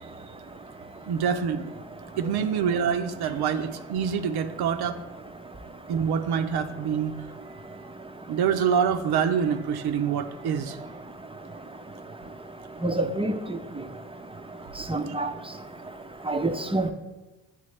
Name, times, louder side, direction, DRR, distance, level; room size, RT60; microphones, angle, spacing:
voice 1, 1.1-1.7 2.2-5.0 5.9-7.1 8.3-10.8, right 7 dB, 60° right, 7 dB, 0.6 m, -26 dB
voice 2, 12.8-13.4 14.9-15.3 16.3-16.9, right 2 dB, 15° right, 6 dB, 0.6 m, -26 dB
9.1 x 3.3 x 3.3 m, 1.1 s
hypercardioid pair, 50°, 43 cm